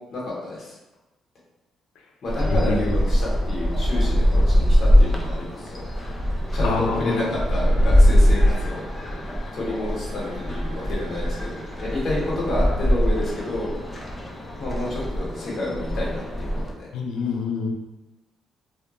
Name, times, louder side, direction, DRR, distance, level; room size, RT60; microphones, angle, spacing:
voice 1, 0.1-0.8 2.2-5.8 6.5-8.8 9.5-13.7 14.6-16.9, left 2 dB, 60° left, -6 dB, 0.9 m, -29 dB
sound 1, 2.3-16.7, equal, 20° left, 0.4 m, -22 dB
voice 2, 6.6-7.2 16.9-17.7, left 4 dB, 85° left, 1 dB, 0.4 m, -26 dB
2.2 x 2.1 x 2.9 m, 1.0 s
cardioid pair, 90°, 0 cm